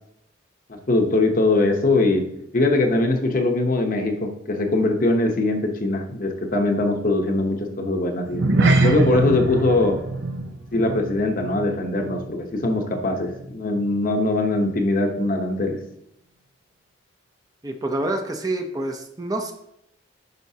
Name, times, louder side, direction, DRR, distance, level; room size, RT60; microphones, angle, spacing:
voice 1, 0.7-2.3 2.5-8.4 8.8-10.0 10.7-15.8, left 2 dB, 45° left, 4 dB, 0.9 m, -21 dB
sound 1, 8.3-12.9 13.2-13.4 13.9-14.0, right 2 dB, 65° right, 0.7 m, -23 dB
voice 2, 17.6-19.5, right 2 dB, 20° right, 4 dB, 0.6 m, -27 dB
10.5 x 5.2 x 2.8 m, 0.78 s
head